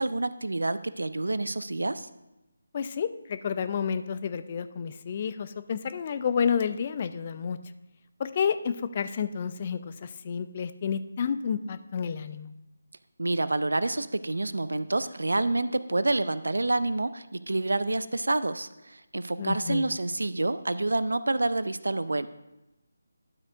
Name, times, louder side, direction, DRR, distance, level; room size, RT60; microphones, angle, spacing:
voice 1, 0.0-2.1 13.2-22.3, right 2 dB, 70° right, 15 dB, 0.4 m, -28 dB
voice 2, 2.7-7.6 8.2-12.5 19.4-20.0, left 7 dB, 35° left, 12 dB, 0.4 m, -30 dB
12.0 x 7.7 x 2.5 m, 0.97 s
figure-of-eight pair, 155°, 0 cm